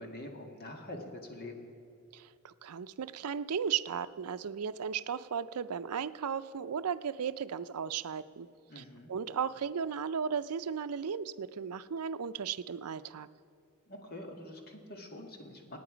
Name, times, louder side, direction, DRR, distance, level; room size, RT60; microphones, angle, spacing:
voice 1, 0.0-1.7 8.7-9.1 13.9-15.8, left 1 dB, 45° left, 2 dB, 1.9 m, -45 dB
voice 2, 2.1-8.5 8.8-8.9 9.1-13.3, right 7 dB, 85° right, 14 dB, 0.5 m, -35 dB
26.5 x 9.4 x 5.1 m, 2.3 s
head